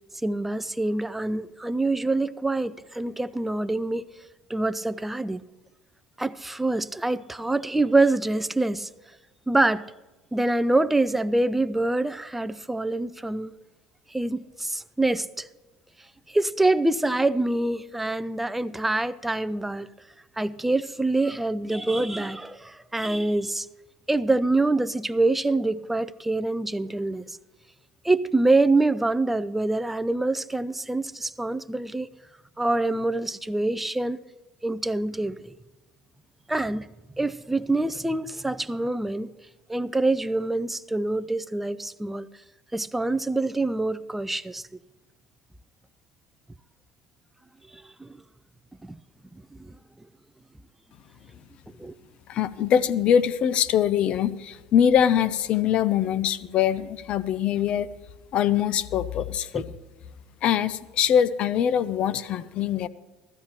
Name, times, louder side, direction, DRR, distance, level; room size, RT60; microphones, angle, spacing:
voice 1, 0.2-4.1 4.5-5.4 6.2-8.9 9.5-9.9 10.3-13.5 14.1-15.5 16.3-19.9 20.4-23.7 24.1-27.4 28.0-32.1 32.6-34.2 34.6-35.5 36.5-36.9 37.2-39.3 39.7-42.3 42.7-44.6 47.7-48.2 48.8-49.0 49.3-49.8 51.8-52.0 59.5-59.6, right 2 dB, 10° right, 0.4 m, -25 dB
voice 2, 52.3-57.9 58.3-59.7 60.4-62.9, left 9 dB, 50° left, 0.6 m, -23 dB
15.5 x 13.0 x 3.0 m
figure-of-eight pair, 65°, 2 cm